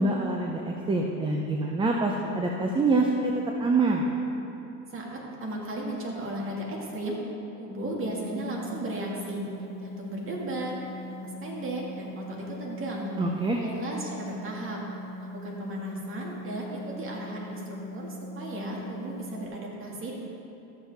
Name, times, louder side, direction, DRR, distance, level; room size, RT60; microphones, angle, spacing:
voice 1, 0.0-3.3 3.6-4.1 13.2-13.6, right 2 dB, 15° right, 1 dB, 0.6 m, -25 dB
voice 2, 4.9-7.2 7.6-9.4 9.8-10.8 11.1-13.1 13.5-14.8 15.2-20.1, right 1 dB, 35° right, -3 dB, 2.0 m, -35 dB
sound 1, 8.0-19.5, left 1 dB, 35° left, 0.8 m, -41 dB
13.0 x 7.2 x 3.5 m, 2.9 s
supercardioid pair, 115°, 38 cm